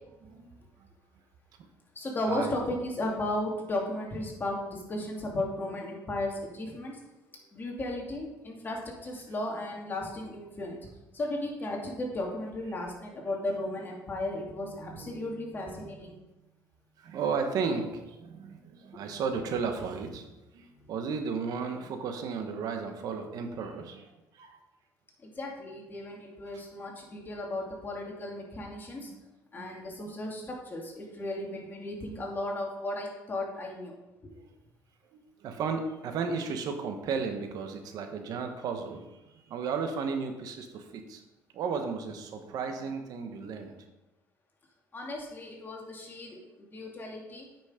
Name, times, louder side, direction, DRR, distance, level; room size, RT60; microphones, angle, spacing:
voice 1, 0.2-0.6 2.3-2.5 14.8-15.3 17.0-20.3 20.5-24.6 28.9-29.1 29.5-29.7 34.3-34.5 35.1-41.2 41.5-43.8, right 5 dB, 65° right, 6 dB, 1.2 m, -34 dB
voice 2, 1.9-7.0 7.5-10.8 11.1-16.2 17.8-17.9 18.9-19.0 20.7-20.9 25.2-29.1 29.5-33.9 34.2-34.3 44.9-47.5, left 1 dB, 30° left, -1 dB, 2.5 m, -35 dB
8.6 x 6.1 x 5.1 m, 1.0 s
cardioid pair, 110°, 7 cm